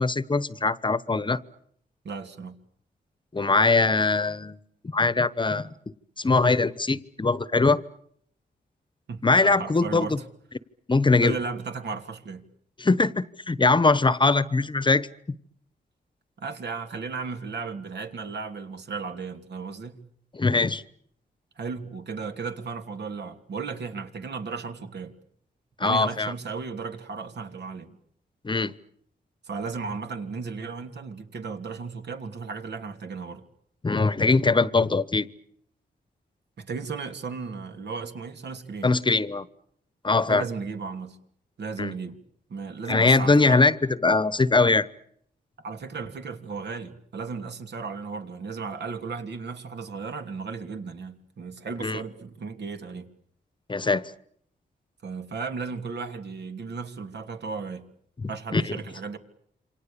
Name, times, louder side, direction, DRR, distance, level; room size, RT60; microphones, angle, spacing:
voice 1, 0.0-1.4 3.3-4.6 4.9-5.7 6.2-7.8 9.2-10.2 10.9-11.3 12.8-15.1 20.3-20.8 25.8-26.3 28.4-28.7 33.8-35.3 38.8-39.5 40.0-40.4 41.8-41.9 42.9-43.7 44.0-44.9 51.8-52.0 53.7-54.1 58.2-58.7, left 3 dB, 25° left, 1.0 m, -22 dB
voice 2, 2.0-2.6 9.1-10.2 11.1-12.4 16.4-20.0 21.6-25.1 25.8-28.0 29.4-33.4 36.6-38.9 40.3-41.2 41.6-42.2 42.5-43.6 45.6-53.1 55.0-57.9 58.3-59.2, right 5 dB, 75° right, 2.9 m, -35 dB
28.5 x 26.0 x 7.0 m
cardioid pair, 95°, 18 cm